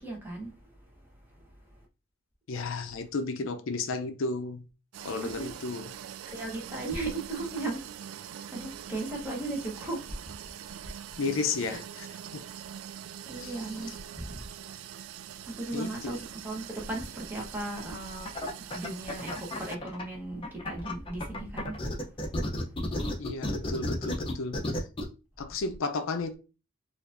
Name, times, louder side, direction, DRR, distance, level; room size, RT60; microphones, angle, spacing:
voice 1, 0.0-1.9 5.4-5.5 6.2-7.8 8.5-10.5 10.8-10.9 11.7-11.8 13.2-14.4 15.4-18.4 18.7-21.9 22.2-22.6, right 2 dB, 10° right, 1.0 m, -37 dB
voice 2, 2.5-4.7 5.0-5.9 11.2-12.1 12.3-12.4 13.4-14.0 15.7-16.2 23.2-24.9 25.4-26.3, left 3 dB, 75° left, 0.5 m, -33 dB
sound 1, 4.9-19.8, right 9 dB, 90° right, 0.3 m, -43 dB
sound 2, 18.3-20.0 20.4-25.0, left 1 dB, 25° left, 0.6 m, -32 dB
4.5 x 2.5 x 2.5 m
head